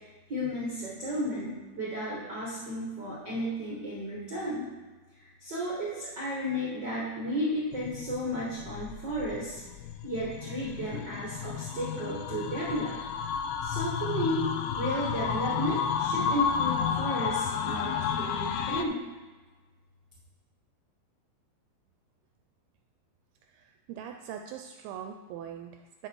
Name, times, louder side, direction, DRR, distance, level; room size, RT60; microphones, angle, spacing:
voice 1, 0.3-4.7 5.1-9.6 10.0-12.9 13.6-19.0, equal, 50° right, -6 dB, 1.3 m, -33 dB
sound 1, 7.7-18.8, left 7 dB, 90° left, 2.7 m, -32 dB
voice 2, 23.4-26.1, right 9 dB, 80° right, 5 dB, 2.4 m, -42 dB
10.5 x 6.2 x 4.6 m, 1.3 s
omnidirectional pair, 4.6 m